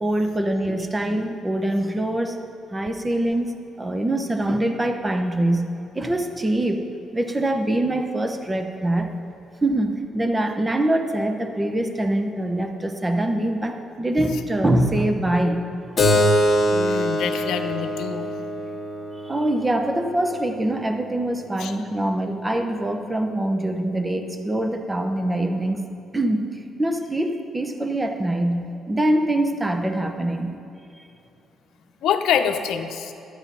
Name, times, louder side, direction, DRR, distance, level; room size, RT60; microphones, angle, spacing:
voice 1, 0.0-2.4 2.7-6.8 7.1-9.1 9.6-15.7 19.2-25.8 26.1-26.5 26.8-30.6, right 1 dB, 20° right, 5 dB, 0.9 m, -24 dB
Keyboard (musical), 16.0-21.1, equal, 35° left, 1.9 m, -24 dB
voice 2, 16.7-18.3 21.6-21.8 32.0-33.1, left 8 dB, 80° left, 7 dB, 0.7 m, -25 dB
12.5 x 8.8 x 5.6 m, 2.8 s
cardioid pair, 90°, 0 cm